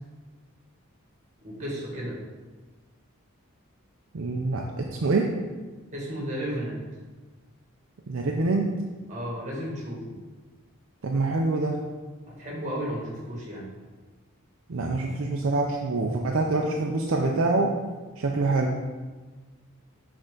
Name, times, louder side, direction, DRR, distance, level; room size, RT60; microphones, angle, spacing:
voice 1, 1.4-2.2 5.9-6.8 9.1-10.1 12.4-13.7, equal, 35° right, -4 dB, 2.0 m, -33 dB
voice 2, 4.1-5.3 8.1-8.7 11.0-11.8 14.7-17.7 18.2-18.8, right 3 dB, 65° right, 0 dB, 0.5 m, -25 dB
6.6 x 4.5 x 3.9 m, 1.3 s
head